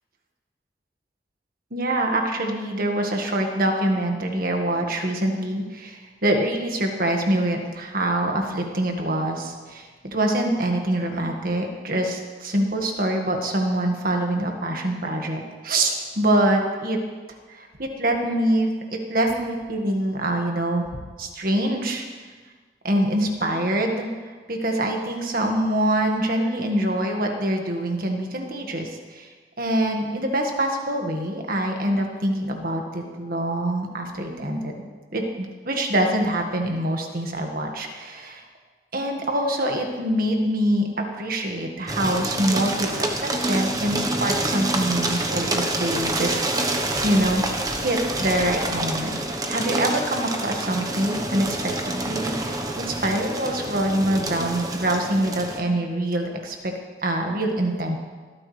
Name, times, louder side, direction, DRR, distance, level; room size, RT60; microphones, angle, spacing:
voice 1, 1.7-17.0 17.5-20.8 21.2-22.1 22.8-29.3 29.6-34.8 35.1-38.5 38.9-47.4 47.8-49.2 49.5-56.7 57.0-58.0, right 1 dB, 50° right, 2 dB, 1.7 m, -25 dB
sound 1, 41.9-55.6, right 2 dB, 20° right, 1.1 m, -27 dB
19.5 x 13.5 x 3.4 m, 1.4 s
head